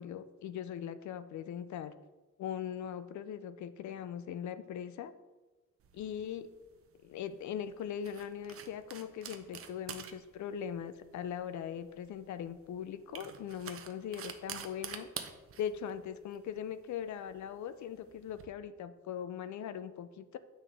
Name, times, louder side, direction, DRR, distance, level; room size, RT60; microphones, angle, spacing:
voice 1, 0.0-1.9 2.4-5.1 5.9-6.5 7.0-15.1 15.6-20.4, left 9 dB, 65° left, 13 dB, 0.5 m, -40 dB
sound 1, 5.8-18.5, right 8 dB, 45° right, 0.6 m, -48 dB
8.7 x 6.1 x 3.4 m, 1.2 s
cardioid pair, 145°, 32 cm